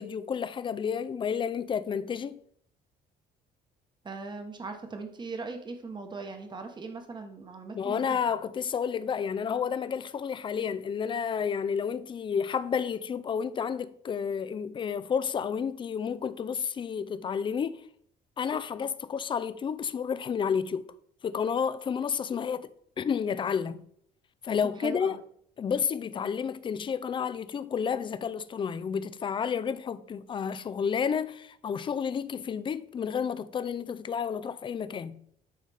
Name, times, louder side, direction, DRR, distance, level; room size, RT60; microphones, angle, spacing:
voice 1, 0.0-2.4 7.7-17.8 18.4-20.9 21.2-22.7 23.0-23.8 24.4-25.2 25.6-35.2, left 7 dB, 30° left, 0.4 m, -31 dB
voice 2, 4.0-8.2 24.8-25.2, right 4 dB, 25° right, 1.1 m, -39 dB
9.3 x 4.0 x 3.4 m
cardioid pair, 110°, 17 cm